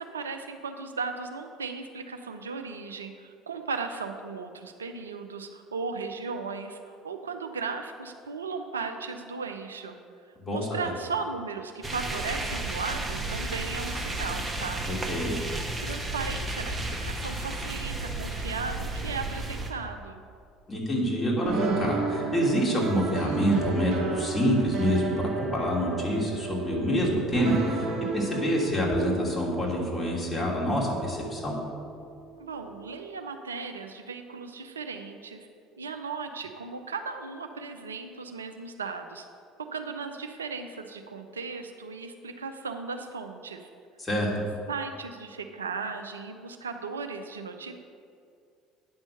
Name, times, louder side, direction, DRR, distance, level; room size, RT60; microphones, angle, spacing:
voice 1, 0.0-10.0 10.5-14.8 15.8-20.2 32.4-35.5 35.8-39.3 39.7-43.7 44.7-47.7, right 4 dB, 80° right, 6 dB, 0.5 m, -36 dB
voice 2, 10.5-10.9 14.9-15.4 20.7-27.9 28.1-31.6 44.0-44.4, equal, 25° left, -3 dB, 2.8 m, -27 dB
sound 1, 11.8-19.7, right 2 dB, 15° right, 1.3 m, -33 dB
sound 2, 21.4-32.9, right 5 dB, 45° right, 1.7 m, -33 dB
9.4 x 6.2 x 6.7 m, 2.3 s
figure-of-eight pair, 65°, 0 cm